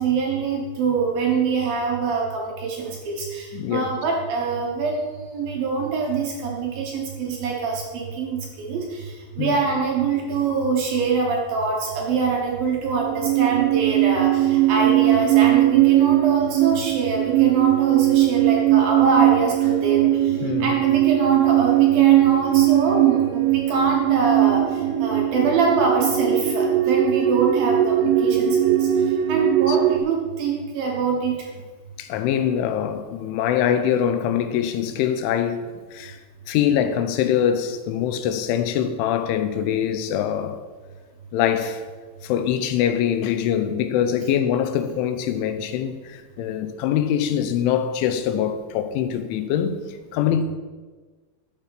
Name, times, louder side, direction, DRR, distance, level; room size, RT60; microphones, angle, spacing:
voice 1, 0.0-3.5 3.7-8.8 9.4-20.1 20.6-24.6 25.0-28.9 29.3-31.4, right 4 dB, 65° right, 2.5 m, -24 dB
voice 2, 3.5-3.9 9.4-9.5 20.4-20.8 29.7-29.8 32.0-35.6 35.9-36.2 36.5-40.6 41.3-41.8 42.2-49.8 50.1-50.4, left 9 dB, 90° left, 3.3 m, -23 dB
sound 1, 12.9-30.0, right 13 dB, 90° right, 3.1 m, -19 dB
10.5 x 7.1 x 5.8 m
omnidirectional pair, 5.4 m